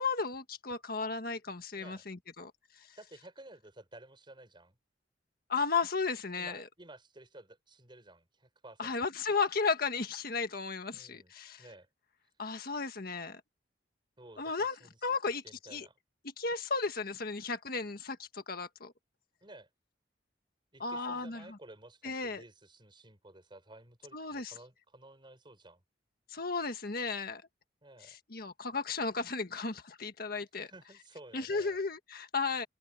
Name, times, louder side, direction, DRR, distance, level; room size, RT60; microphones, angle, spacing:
voice 1, 0.0-2.5 5.5-6.6 8.8-11.6 12.4-13.4 14.4-14.7 15.0-15.4 15.7-15.9 16.4-18.9 20.8-21.4 22.0-22.4 24.1-24.5 26.3-27.4 28.0-30.7 31.3-32.7, left 4 dB, 55° left, 1.6 m, -34 dB
voice 2, 1.7-2.1 3.0-4.8 6.3-9.1 10.9-11.3 11.6-11.9 14.2-15.0 15.4-16.0 19.4-19.7 20.7-25.8 27.8-28.2 30.6-31.8, right 1 dB, 25° right, 6.9 m, -54 dB
open air
head